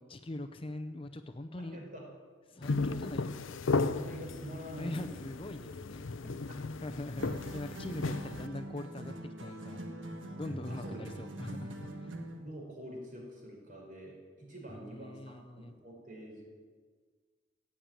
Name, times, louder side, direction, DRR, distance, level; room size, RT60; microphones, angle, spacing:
voice 1, 0.0-1.8 2.5-3.4 4.8-6.1 6.8-9.8 10.4-12.1 14.8-15.7, left 1 dB, 25° left, 7 dB, 0.6 m, -42 dB
voice 2, 1.6-2.0 2.6-2.8 3.8-5.1 6.2-6.6 10.7-11.0 11.6-11.7 12.4-16.4, right 1 dB, 45° right, -1 dB, 4.8 m, -46 dB
sound 1, 2.6-8.5, left 3 dB, 85° left, 0.6 m, -35 dB
sound 2, 7.2-12.5, right 1 dB, 75° right, 1.7 m, -43 dB
16.0 x 8.7 x 9.0 m, 1.5 s
head